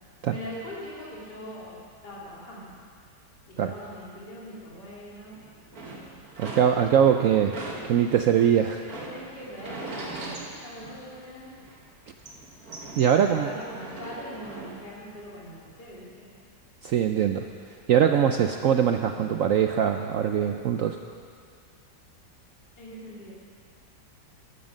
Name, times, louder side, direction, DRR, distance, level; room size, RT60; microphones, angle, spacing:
voice 1, 0.3-2.7 3.5-5.3 8.8-11.6 13.1-16.3 22.8-23.3, equal, 70° left, -7 dB, 3.7 m, -41 dB
sound 1, 5.3-7.1 7.5-11.3 11.6-14.7, right 2 dB, 55° right, 2.2 m, -40 dB
voice 2, 6.4-7.6 7.8-8.8 13.0-13.5 16.8-17.5 17.9-21.0, right 9 dB, 70° right, 6 dB, 0.8 m, -22 dB
13.0 x 12.5 x 6.4 m, 2.1 s
omnidirectional pair, 1.9 m